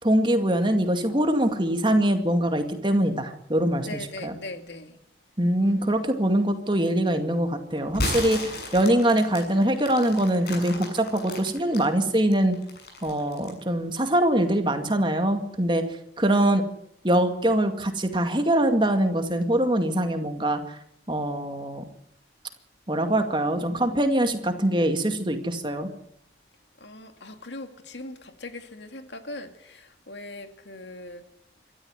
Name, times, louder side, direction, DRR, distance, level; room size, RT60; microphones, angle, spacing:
voice 1, 0.0-3.9 4.2-4.3 5.4-12.5 13.0-15.8 16.2-16.6 17.0-20.8 21.1-21.8 22.9-25.9, right 1 dB, 25° right, 2.2 m, -23 dB
voice 2, 3.8-5.0 5.6-6.0 26.8-31.2, left 2 dB, 80° left, 2.3 m, -40 dB
sound 1, 7.9-11.9 12.3-13.6, left 2 dB, 60° left, 7.3 m, -33 dB
26.0 x 13.5 x 8.0 m
head